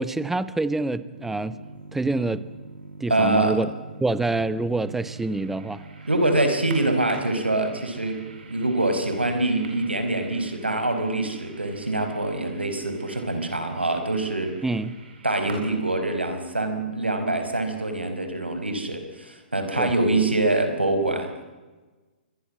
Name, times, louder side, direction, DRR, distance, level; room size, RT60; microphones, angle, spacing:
voice 1, 0.0-1.6 1.9-2.4 3.0-3.7 4.0-5.9 14.6-14.9 19.8-19.9, right 2 dB, 5° right, 15 dB, 1.0 m, -26 dB
sound 1, 1.1-16.2, right 3 dB, 70° right, 6.7 m, -44 dB
voice 2, 3.1-3.6 6.1-8.2 8.5-14.5 15.2-21.5, right 2 dB, 90° right, 7 dB, 4.9 m, -25 dB
27.0 x 22.0 x 7.5 m, 1.2 s
figure-of-eight pair, 120°, 6 cm